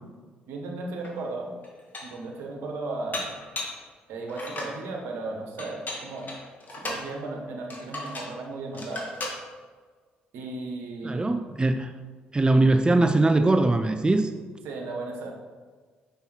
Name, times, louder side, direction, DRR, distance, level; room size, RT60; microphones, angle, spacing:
voice 1, 0.5-1.5 2.0-3.3 4.1-6.3 6.7-9.1 10.3-11.4 14.6-15.3, right 2 dB, 70° right, 1 dB, 1.3 m, -35 dB
Dishes pots and pans, 1.0-1.1 1.6-2.2 3.1-3.8 4.3-4.8 5.6-7.1 7.7-8.4 8.7-9.4, left 2 dB, 40° left, 1.9 m, -36 dB
voice 2, 11.0-11.9 12.3-14.3, right 2 dB, 20° right, 7 dB, 0.5 m, -21 dB
5.8 x 5.5 x 4.4 m, 1.5 s
hypercardioid pair, 50°, 4 cm